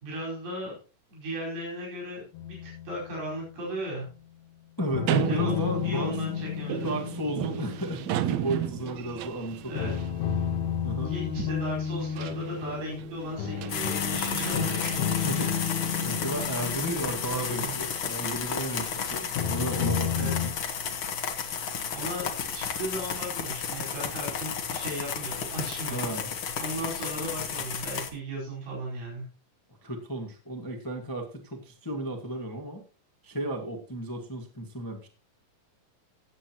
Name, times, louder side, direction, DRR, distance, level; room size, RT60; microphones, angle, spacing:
voice 1, 0.0-0.8 1.1-4.1 5.3-6.9 9.6-9.9 11.0-15.6 16.5-17.7 20.1-20.3 21.9-26.1 26.6-29.3, right 1 dB, 90° right, -4 dB, 6.5 m, -36 dB
sound 1, 2.3-3.5 4.9-8.9 9.8-18.6 19.4-20.5, left 8 dB, 75° left, 2.6 m, -32 dB
voice 2, 4.8-6.2 6.8-9.9 10.8-11.1 15.2-15.5 16.0-20.5 25.9-26.3 29.8-32.8 33.2-35.1, right 1 dB, 30° left, 1 dB, 0.4 m, -34 dB
sound 2, 5.1-16.5, right 10 dB, 75° right, 1.7 m, -35 dB
sound 3, 13.7-28.1, left 6 dB, 50° left, 1.8 m, -33 dB
18.0 x 7.9 x 3.0 m, 0.35 s
omnidirectional pair, 3.9 m